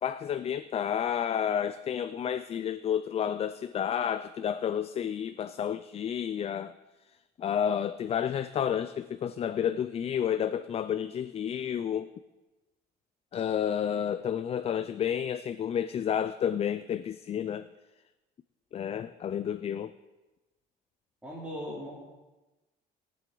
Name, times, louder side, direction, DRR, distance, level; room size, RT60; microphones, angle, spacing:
voice 1, 0.0-6.7 7.4-12.1 13.3-17.7 18.7-19.9, left 9 dB, 35° left, 12 dB, 0.4 m, -30 dB
voice 2, 21.2-21.9, equal, 5° right, -7 dB, 3.3 m, -38 dB
21.0 x 7.6 x 3.9 m, 1.1 s
cardioid pair, 110°, 17 cm